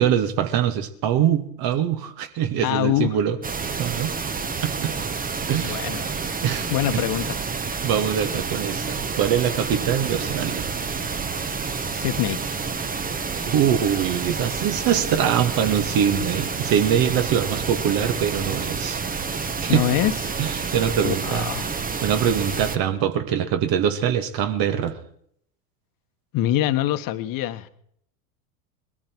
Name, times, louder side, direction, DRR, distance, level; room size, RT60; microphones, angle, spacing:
voice 1, 0.0-3.4 3.8-4.1 4.6-4.9 5.5-5.9 6.4-7.0 7.8-10.7 13.5-19.0 19.6-19.8 20.4-21.5 22.0-25.0, right 9 dB, 50° right, 8 dB, 2.1 m, -23 dB
voice 2, 2.6-3.1 5.6-6.1 6.7-7.4 11.9-12.5 19.7-20.4 21.0-21.7 26.3-27.7, left 12 dB, 45° left, 10 dB, 1.5 m, -24 dB
sound 1, 3.4-22.8, right 5 dB, 20° right, 1.3 m, -29 dB
21.0 x 13.5 x 4.6 m, 0.68 s
hypercardioid pair, 85°, 45 cm